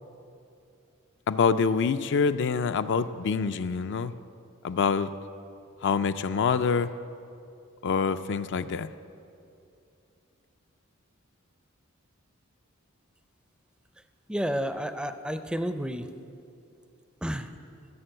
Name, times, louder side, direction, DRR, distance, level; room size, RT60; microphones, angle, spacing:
voice 1, 1.3-4.1 4.6-5.1 5.8-6.9 7.8-8.9, left 5 dB, 60° left, 11 dB, 0.4 m, -26 dB
voice 2, 14.3-16.1 17.2-17.5, equal, 5° right, 9 dB, 0.4 m, -31 dB
15.5 x 6.8 x 7.8 m, 2.6 s
head